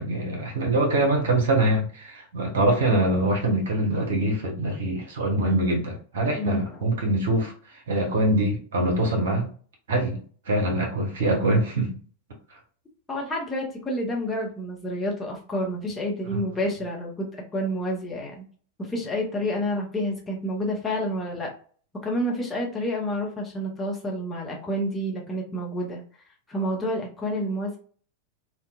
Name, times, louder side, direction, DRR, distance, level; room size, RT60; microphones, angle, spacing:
voice 1, 0.0-7.5 7.9-9.5 9.9-10.2 10.5-12.0 16.3-16.4, right 1 dB, 60° right, 0 dB, 1.0 m, -24 dB
voice 2, 6.3-6.8 13.1-18.4 18.8-21.5 22.0-26.0 26.5-27.8, equal, 15° left, -2 dB, 0.8 m, -29 dB
2.8 x 2.3 x 2.3 m, 0.43 s
figure-of-eight pair, 90°, 0 cm